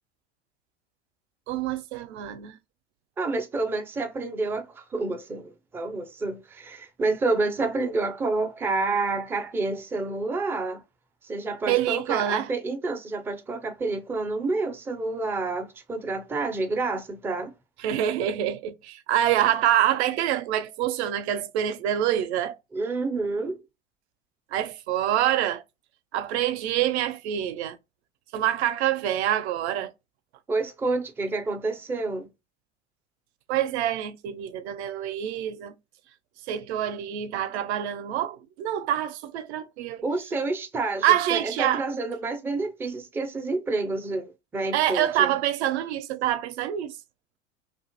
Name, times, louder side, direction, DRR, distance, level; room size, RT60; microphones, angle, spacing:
voice 1, 1.5-2.6 11.7-12.5 17.8-22.6 24.5-25.6 26.1-27.8 28.3-29.9 33.5-35.7 36.5-40.0 41.0-41.9 44.7-46.9, right 11 dB, 65° right, 0.5 m, -26 dB
voice 2, 3.2-10.8 11.2-17.5 22.7-23.6 30.5-32.3 40.0-45.3, right 3 dB, 5° right, 0.3 m, -29 dB
2.4 x 2.3 x 2.6 m
figure-of-eight pair, 75°, 36 cm